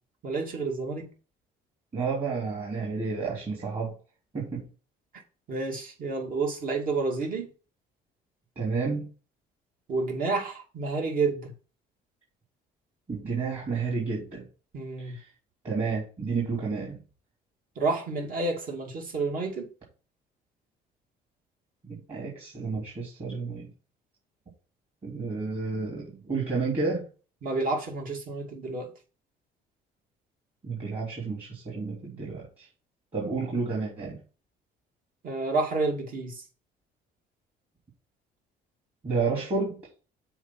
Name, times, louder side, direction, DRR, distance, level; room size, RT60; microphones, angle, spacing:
voice 1, 0.2-1.1 5.5-7.5 9.9-11.5 14.7-15.1 17.8-19.7 27.4-28.9 35.2-36.4, right 3 dB, 55° right, 2.5 m, -29 dB
voice 2, 1.9-3.9 4.3-4.6 8.6-9.1 13.1-14.4 15.0-15.3 15.6-17.0 21.8-23.7 25.0-27.0 30.6-32.7 33.1-34.2 39.0-39.8, right 4 dB, 35° right, 3.1 m, -31 dB
7.1 x 4.7 x 5.9 m
cardioid pair, 110°, 17 cm